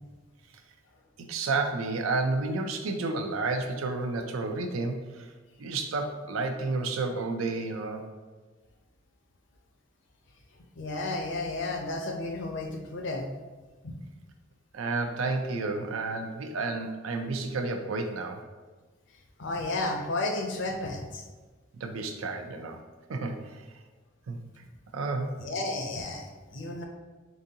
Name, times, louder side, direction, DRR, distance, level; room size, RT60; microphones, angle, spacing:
voice 1, 1.2-5.3 5.6-8.1 14.7-18.4 21.8-22.8 23.1-23.7 24.3-24.4 24.9-25.3, right 3 dB, 80° right, 5 dB, 0.5 m, -31 dB
voice 2, 10.8-13.2 13.8-13.9 19.4-21.2 25.4-26.8, left 2 dB, 60° left, 2 dB, 0.6 m, -32 dB
3.9 x 3.6 x 2.7 m, 1.3 s
head